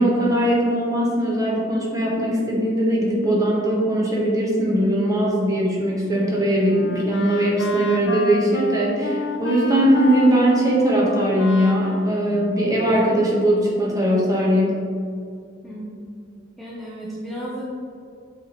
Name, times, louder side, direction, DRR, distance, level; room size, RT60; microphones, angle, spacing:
voice 1, 0.0-14.8, right 1 dB, 20° right, -4 dB, 1.1 m, -20 dB
Wind instrument woodwind instrument, 6.1-13.3, left 2 dB, 60° left, 0.5 m, -30 dB
voice 2, 15.6-16.0 16.6-17.6, right 1 dB, ahead, -7 dB, 0.6 m, -34 dB
7.6 x 4.2 x 3.0 m, 2.4 s
head